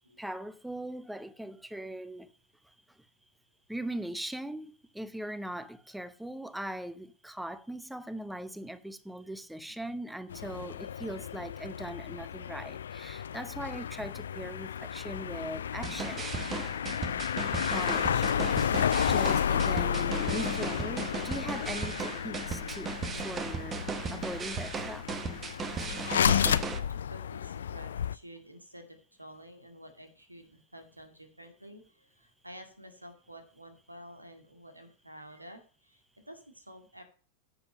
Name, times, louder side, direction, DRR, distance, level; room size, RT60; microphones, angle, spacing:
voice 1, 0.2-2.3 3.7-16.2 17.5-18.3 19.0-22.9 23.2-25.0, right 1 dB, 5° right, 0.9 m, -40 dB
sound 1, 10.3-28.2, left 8 dB, 65° left, 0.4 m, -32 dB
sound 2, 15.8-26.8, right 5 dB, 25° right, 1.1 m, -37 dB
voice 2, 26.5-37.0, equal, 85° right, 2.2 m, -50 dB
10.0 x 8.1 x 5.2 m
figure-of-eight pair, 90°, 0 cm